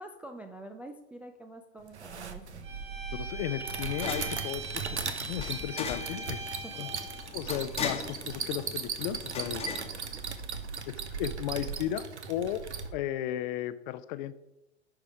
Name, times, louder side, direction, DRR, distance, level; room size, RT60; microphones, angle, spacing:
voice 1, 0.0-2.7 6.6-6.9 7.8-7.9 9.6-10.0, right 1 dB, 5° right, 2 dB, 0.3 m, -47 dB
sound 1, 1.9-12.9, right 6 dB, 80° right, 1.1 m, -38 dB
sound 2, 2.5-10.8, left 6 dB, 20° left, 1.2 m, -41 dB
Bowed string instrument, 2.6-7.3, right 2 dB, 30° right, 2.1 m, -40 dB
voice 2, 3.1-6.9 7.3-9.7 10.9-12.7 12.9-14.3, left 11 dB, 45° left, 14 dB, 0.7 m, -35 dB
10.5 x 4.9 x 4.7 m, 0.93 s
hypercardioid pair, 105°, 33 cm